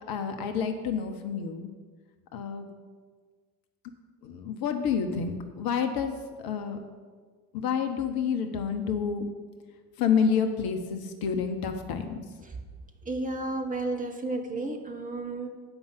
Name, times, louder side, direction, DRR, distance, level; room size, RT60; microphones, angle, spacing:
voice 1, 0.1-1.7 2.3-2.7 4.2-6.8 7.5-9.3 10.0-12.2, left 6 dB, 45° left, 6 dB, 0.9 m, -29 dB
voice 2, 13.0-15.5, right 2 dB, 15° right, 3 dB, 1.1 m, -32 dB
7.9 x 5.4 x 7.7 m, 1.5 s
figure-of-eight pair, 55°, 49 cm